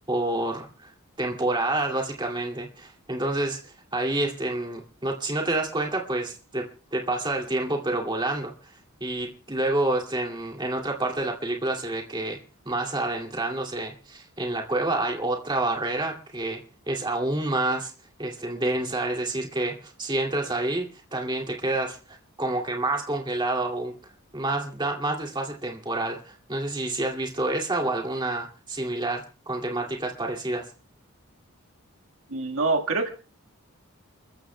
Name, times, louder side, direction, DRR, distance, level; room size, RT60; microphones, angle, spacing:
voice 1, 0.1-0.9 1.2-8.7 9.0-12.4 12.7-16.6 16.9-17.9 18.2-23.9 24.3-30.7, right 2 dB, 20° right, 1 dB, 2.4 m, -28 dB
voice 2, 32.3-33.1, right 3 dB, 70° right, 3 dB, 1.6 m, -25 dB
29.0 x 14.5 x 2.2 m, 0.35 s
head